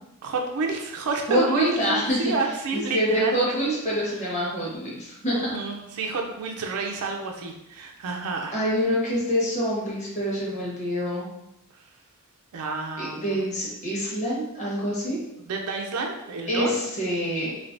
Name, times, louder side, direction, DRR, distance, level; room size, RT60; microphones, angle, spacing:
voice 1, 0.2-3.8 5.3-8.6 11.7-11.9 12.5-13.4 15.4-16.7, right 3 dB, 85° right, 2 dB, 0.4 m, -30 dB
voice 2, 1.3-2.3 2.7-5.6 8.5-11.3 13.0-15.2 16.5-17.5, equal, 35° left, -6 dB, 1.1 m, -26 dB
3.2 x 2.8 x 2.6 m, 0.86 s
head